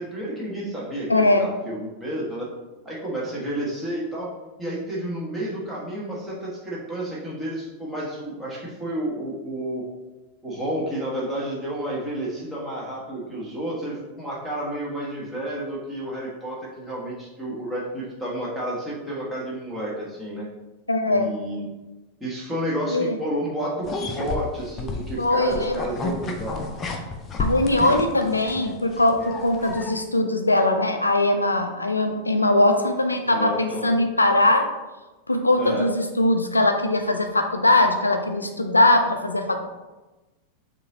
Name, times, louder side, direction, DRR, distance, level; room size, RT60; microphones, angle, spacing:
voice 1, 0.0-2.5 2.8-4.3 4.6-9.8 10.4-20.4 21.1-21.7 22.2-23.7 24.1-26.5 27.7-27.9 33.2-33.9 35.6-35.9, right 1 dB, 5° right, -6 dB, 1.5 m, -31 dB
voice 2, 1.1-1.5 20.9-21.3 22.9-23.2 25.2-25.8 27.4-34.6 35.3-39.7, left 2 dB, 80° left, 6 dB, 0.4 m, -21 dB
sound 1, 23.8-29.9, left 3 dB, 25° left, 0.6 m, -31 dB
6.4 x 2.8 x 2.8 m, 1.1 s
figure-of-eight pair, 90°, 0 cm